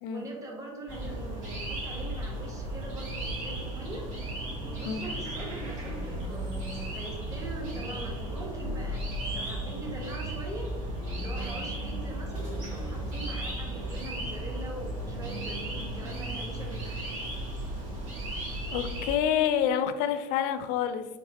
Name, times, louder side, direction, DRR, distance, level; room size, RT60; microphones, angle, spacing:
voice 1, 0.1-4.1 4.6-6.6 6.9-10.7 11.2-17.2, right 1 dB, 20° right, -1 dB, 1.1 m, -42 dB
sound 1, 0.9-19.2, right 1 dB, 80° right, 1.4 m, -35 dB
sound 2, 4.2-10.0 10.8-15.9, left 1 dB, 10° left, 0.8 m, -48 dB
voice 2, 18.7-21.1, left 9 dB, 65° left, 10 dB, 0.4 m, -27 dB
4.0 x 3.2 x 2.7 m, 1.1 s
supercardioid pair, 95°, 15 cm